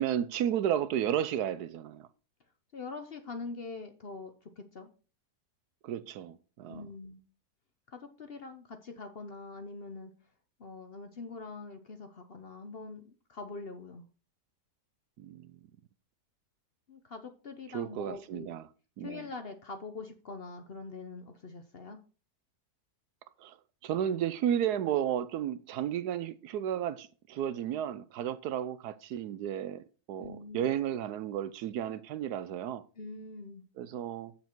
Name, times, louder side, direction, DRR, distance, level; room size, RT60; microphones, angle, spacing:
voice 1, 0.0-2.1 5.8-6.8 15.2-15.6 17.7-18.7 19.0-19.3 23.4-23.6 23.8-32.8 33.8-34.3, right 10 dB, 75° right, 1.1 m, -33 dB
voice 2, 2.7-4.9 6.7-7.2 7.9-10.1 10.6-14.0 16.9-18.5 19.0-22.0 30.2-30.7 33.0-33.6, left 3 dB, 45° left, 0.9 m, -44 dB
7.8 x 6.9 x 4.5 m
omnidirectional pair, 1.7 m